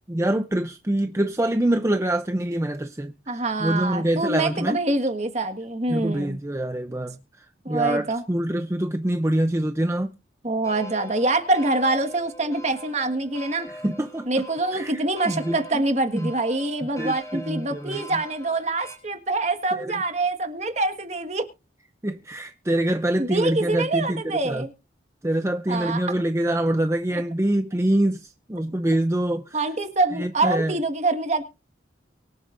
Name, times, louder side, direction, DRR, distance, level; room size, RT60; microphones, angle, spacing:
voice 1, 0.1-4.8 5.9-10.1 13.7-14.3 14.7-15.8 16.1-16.3 17.0-18.0 19.7-20.0 22.0-24.7 25.2-29.6 30.1-30.8, right 1 dB, 15° right, 0.6 m, -25 dB
voice 2, 3.3-6.4 7.6-8.2 10.4-13.7 14.3-21.4 23.2-24.7 25.7-26.0 27.1-27.2 29.5-31.4, right 2 dB, 40° right, 1.6 m, -25 dB
sound 1, 10.6-19.0, right 1 dB, 15° left, 3.7 m, -43 dB
24.0 x 8.2 x 2.6 m
head